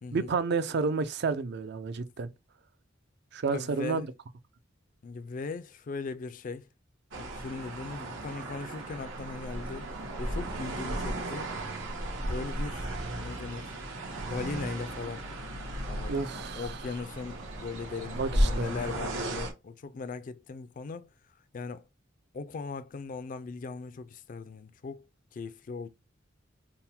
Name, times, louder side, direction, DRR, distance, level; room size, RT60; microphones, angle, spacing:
voice 1, 0.1-2.3 3.3-4.1 16.1-16.6 18.1-18.7, right 4 dB, 60° right, 0.4 m, -30 dB
voice 2, 3.5-4.1 5.0-6.7 7.1-9.9 10.2-11.5 12.2-13.8 14.1-15.3 15.9-21.1 21.5-21.9 22.3-25.9, left 4 dB, 45° left, 0.4 m, -39 dB
sound 1, 7.1-19.5, right 1 dB, 85° right, 1.2 m, -35 dB
3.5 x 2.1 x 4.3 m
head